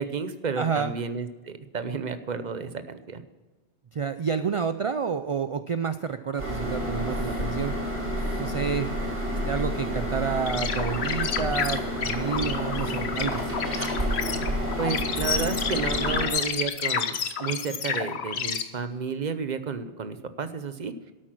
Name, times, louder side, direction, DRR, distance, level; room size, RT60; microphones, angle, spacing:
voice 1, 0.0-3.2 14.8-20.9, right 5 dB, 45° right, 10 dB, 0.9 m, -31 dB
voice 2, 0.6-0.9 3.9-7.7 8.4-8.9 9.3-13.4, right 6 dB, 60° right, 10 dB, 0.3 m, -29 dB
sound 1, 6.4-16.3, equal, 85° right, 3.9 m, -30 dB
sound 2, 10.5-18.6, left 6 dB, 70° left, 1.2 m, -30 dB
12.5 x 8.8 x 6.0 m, 1.2 s
omnidirectional pair, 1.1 m